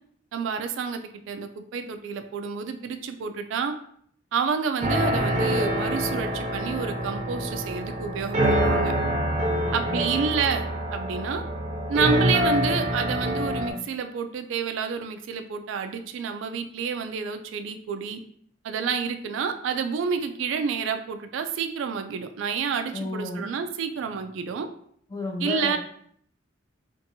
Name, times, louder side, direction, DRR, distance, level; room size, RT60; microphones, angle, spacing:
voice 1, 0.3-3.7 4.3-8.9 9.7-10.7 10.9-11.4 11.9-18.2 18.6-24.7 25.4-25.8, right 6 dB, 90° right, 7 dB, 0.3 m, -29 dB
sound 1, 4.8-13.7, equal, 35° right, 0.6 m, -26 dB
voice 2, 9.4-10.2 22.9-23.4 25.1-25.8, left 2 dB, 20° left, 0 dB, 0.5 m, -32 dB
2.6 x 2.5 x 2.6 m, 0.64 s
head